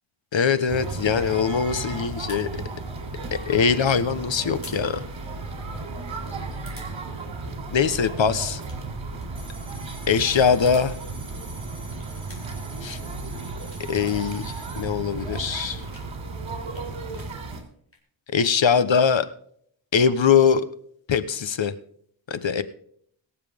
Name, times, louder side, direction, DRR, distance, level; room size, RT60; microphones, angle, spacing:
voice 1, 0.3-2.5 3.3-5.0 7.7-8.6 10.1-11.0 12.8-13.0 13.9-15.8 18.3-19.3 19.9-20.7 21.1-21.7 22.3-22.6, left 6 dB, 65° left, 13 dB, 1.2 m, -22 dB
sound 1, 0.7-17.6, right 3 dB, 65° right, 3.5 m, -34 dB
sound 2, 2.3-2.4 4.6-4.8 5.2-5.3 6.6-6.9 8.4-8.8 9.1-9.3 10.4-10.9 11.9-12.6 13.2-14.3 14.6-16.1 16.5-18.0, left 2 dB, 25° left, 4.1 m, -48 dB
sound 3, 9.4-14.9, right 3 dB, 10° right, 4.8 m, -47 dB
22.5 x 7.6 x 3.6 m, 0.64 s
wide cardioid pair, 100°, 49 cm